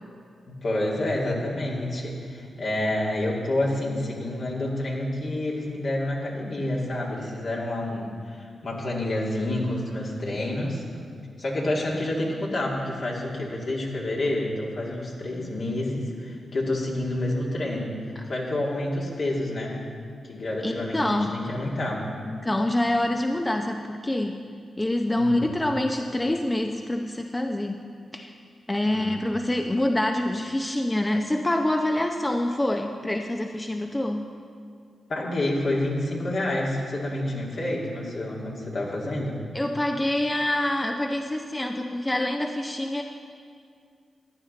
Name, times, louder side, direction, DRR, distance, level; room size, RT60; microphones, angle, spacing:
voice 1, 0.5-10.8 11.4-19.8 20.2-22.1 25.1-25.5 28.8-29.2 35.1-39.4, left 1 dB, 60° left, -4 dB, 2.5 m, -28 dB
voice 2, 20.6-21.3 22.3-24.4 24.8-27.8 28.1-28.4 28.7-34.3 39.5-43.0, left 1 dB, 20° left, 4 dB, 0.7 m, -26 dB
14.5 x 10.0 x 3.9 m, 2.2 s
supercardioid pair, 40°, 0 cm